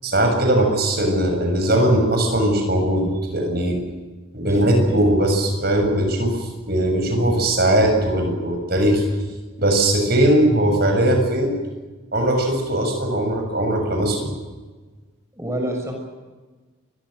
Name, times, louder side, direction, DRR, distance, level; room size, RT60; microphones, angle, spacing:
voice 1, 0.0-3.8 4.3-9.0 9.6-11.5 12.1-14.3, right 1 dB, 50° right, 3 dB, 7.1 m, -19 dB
voice 2, 4.4-5.0 15.3-15.9, right 1 dB, 15° right, 2 dB, 6.5 m, -28 dB
29.5 x 24.0 x 6.7 m, 1.3 s
head